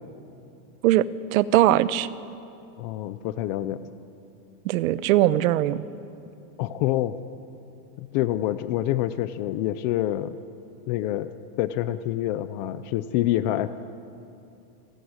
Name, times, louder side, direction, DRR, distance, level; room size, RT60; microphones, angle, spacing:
voice 1, 0.8-2.1 4.6-5.8, right 14 dB, 60° right, 16 dB, 1.0 m, -20 dB
voice 2, 2.8-3.9 6.6-7.2 8.0-10.4 10.9-11.3 11.6-13.7, left 13 dB, 30° left, 13 dB, 0.5 m, -26 dB
29.0 x 15.0 x 9.6 m, 2.7 s
supercardioid pair, 160°, 47 cm